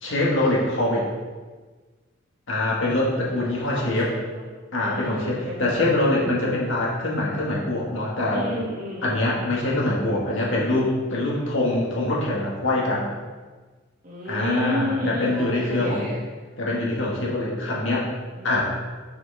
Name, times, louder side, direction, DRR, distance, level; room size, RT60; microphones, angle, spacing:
voice 1, 0.0-1.0 2.5-4.1 4.7-8.5 9.0-13.1 14.3-16.1 16.6-18.1 18.4-18.7, left 2 dB, 65° left, -4 dB, 1.8 m, -24 dB
voice 2, 3.4-4.5 4.8-6.4 8.3-9.1 14.0-16.2 18.4-18.7, equal, 40° right, -6 dB, 2.1 m, -32 dB
6.8 x 6.3 x 3.5 m, 1.4 s
head